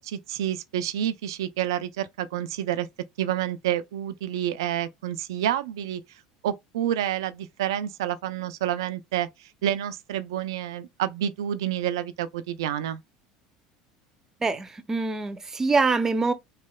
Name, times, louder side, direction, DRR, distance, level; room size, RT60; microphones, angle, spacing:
voice 1, 0.0-2.9 3.2-6.0 6.4-13.0, right 11 dB, 85° right, 0.4 m, -29 dB
voice 2, 14.4-16.3, right 4 dB, 20° right, 0.6 m, -24 dB
3.1 x 2.7 x 2.2 m
supercardioid pair, 90°, 2 cm